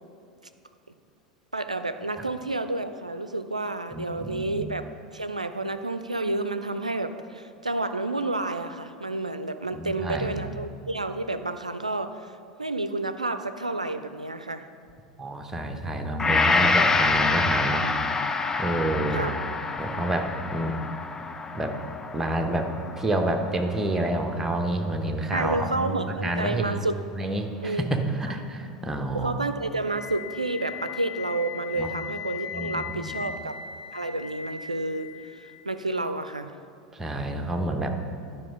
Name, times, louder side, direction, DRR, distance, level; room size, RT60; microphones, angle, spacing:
voice 1, 1.5-4.8 5.1-12.3 12.6-14.7 19.1-19.4 25.3-26.9 27.6-27.9 29.1-33.6 33.9-36.5, right 2 dB, 85° right, 10 dB, 0.4 m, -30 dB
voice 2, 3.9-4.7 9.7-10.5 15.2-17.8 18.6-19.3 19.8-20.7 21.5-21.8 22.1-29.3 31.8-31.9 32.5-33.3 36.9-38.0, right 1 dB, 10° right, 4 dB, 0.9 m, -29 dB
Gong, 16.2-24.5 25.0-25.1, left 4 dB, 15° left, 0.5 m, -27 dB
Wind instrument woodwind instrument, 29.8-35.7, left 7 dB, 55° left, 2.2 m, -39 dB
10.5 x 5.3 x 5.2 m, 2.4 s
figure-of-eight pair, 80°, 4 cm